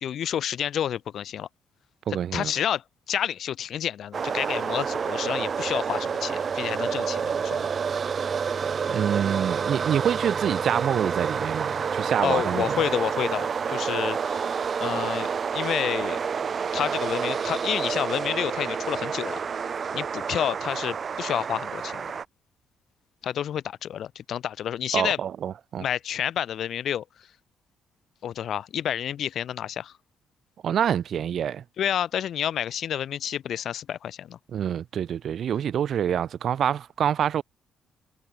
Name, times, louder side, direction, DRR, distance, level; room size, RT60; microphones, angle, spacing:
voice 1, 0.0-1.5 2.1-7.7 11.8-11.9 12.2-14.5 14.8-15.3 15.5-16.2 16.7-19.4 19.9-22.0 23.2-25.2 25.8-27.0 28.2-29.9 31.8-34.4, left 10 dB, 65° left, 1.3 m, -29 dB
voice 2, 2.1-2.5 8.9-12.8 24.9-25.8 30.6-31.6 34.5-37.4, right 9 dB, 60° right, 1.0 m, -26 dB
sound 1, 4.1-22.2, right 6 dB, 45° right, 0.5 m, -29 dB
cardioid pair, 90°, 0 cm